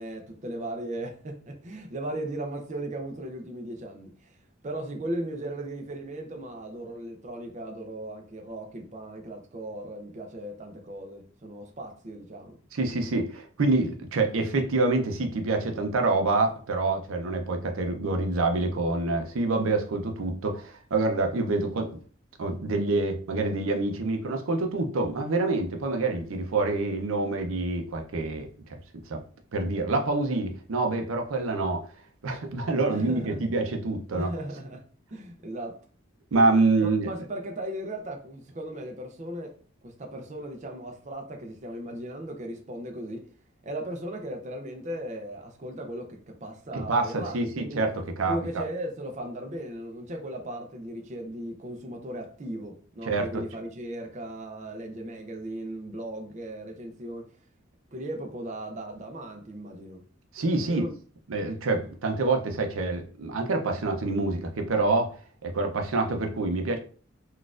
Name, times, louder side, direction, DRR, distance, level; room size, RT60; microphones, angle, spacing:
voice 1, 0.0-12.6 32.9-33.4 34.1-34.8 35.1-35.8 36.4-36.5 36.8-43.3 43.6-47.9 48.2-57.5 57.9-60.0 60.7-60.9, right 1 dB, 35° right, 0.4 m, -37 dB
voice 2, 12.7-22.0 22.4-28.8 29.1-29.2 29.5-31.9 32.2-34.3 36.3-37.1 46.9-47.9 48.2-48.6 53.1-53.3 60.3-60.8 61.3-65.2 65.4-66.8, right 3 dB, 85° right, 0.5 m, -26 dB
4.0 x 2.4 x 2.4 m
head